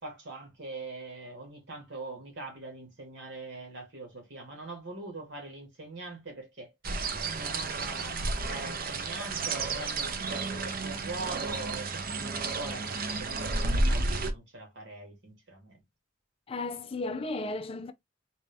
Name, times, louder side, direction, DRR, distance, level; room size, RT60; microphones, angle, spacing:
voice 1, 0.0-6.7 7.3-15.8, right 2 dB, 65° right, 2.2 m, -43 dB
sound 1, 6.8-14.3, right 3 dB, 50° right, 0.7 m, -31 dB
voice 2, 16.5-17.9, left 2 dB, 30° left, 0.4 m, -34 dB
4.1 x 2.7 x 3.4 m
head